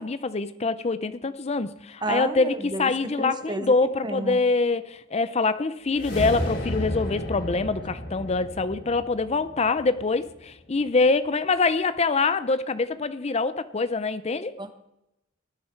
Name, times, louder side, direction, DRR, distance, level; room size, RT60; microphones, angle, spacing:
voice 1, 0.0-14.6, left 3 dB, 35° left, 13 dB, 0.6 m, -25 dB
voice 2, 2.0-2.9 3.2-3.7 4.0-4.4 14.6-14.7, right 2 dB, 25° right, 9 dB, 1.2 m, -31 dB
sound 1, 5.9-10.3, equal, 65° left, 3.8 m, -33 dB
18.0 x 11.0 x 4.6 m, 0.85 s
head